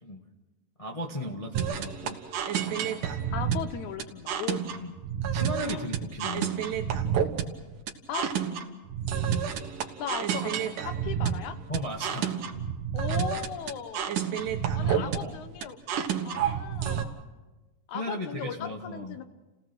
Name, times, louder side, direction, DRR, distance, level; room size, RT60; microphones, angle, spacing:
voice 1, 0.8-2.2 4.7-4.9 5.3-6.6 11.7-12.4 15.0-15.4 17.9-19.2, equal, 45° left, 0 dB, 0.4 m, -36 dB
sound 1, 1.5-17.0, right 8 dB, 70° right, 2.8 m, -29 dB
voice 2, 3.3-4.6 5.7-5.9 8.1-8.3 10.0-11.6 12.9-14.1 14.7-15.8 16.3-17.3 17.9-19.2, left 8 dB, 70° left, 10 dB, 2.2 m, -37 dB
30.0 x 17.5 x 6.1 m, 1.2 s
omnidirectional pair, 3.9 m